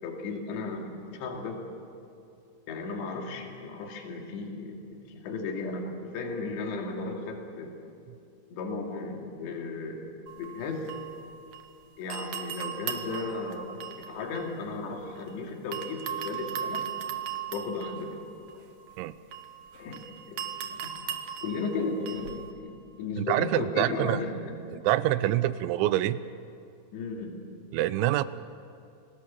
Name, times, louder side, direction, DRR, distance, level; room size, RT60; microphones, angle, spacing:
voice 1, 0.0-1.6 2.7-7.7 8.5-10.9 12.0-16.9 17.5-18.2 19.7-20.0 20.3-24.5 26.9-27.4, left 3 dB, 70° left, 1 dB, 4.5 m, -35 dB
sound 1, 10.3-11.8 12.1-15.3 15.7-22.5, right 9 dB, 65° right, 2.3 m, -38 dB
voice 2, 23.2-24.2 24.7-26.2 27.7-28.2, right 15 dB, 85° right, 15 dB, 3.0 m, -26 dB
29.0 x 19.5 x 7.5 m, 2.6 s
omnidirectional pair, 5.3 m